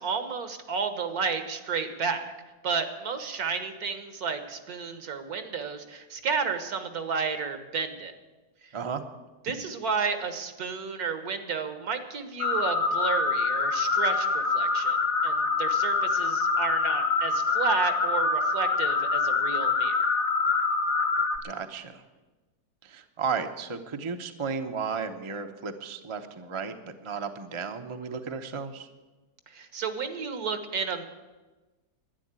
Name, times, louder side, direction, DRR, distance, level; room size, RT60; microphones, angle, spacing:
voice 1, 0.0-2.3 2.6-8.1 9.4-15.0 15.2-19.9 29.5-31.0, right 5 dB, 65° right, 9 dB, 1.7 m, -31 dB
sound 1, 12.4-21.4, left 4 dB, 75° left, 1.7 m, -25 dB
voice 2, 21.4-22.0 22.8-26.7 27.0-28.9, right 5 dB, 30° right, 6 dB, 0.6 m, -34 dB
11.5 x 10.5 x 8.9 m, 1.2 s
omnidirectional pair, 1.7 m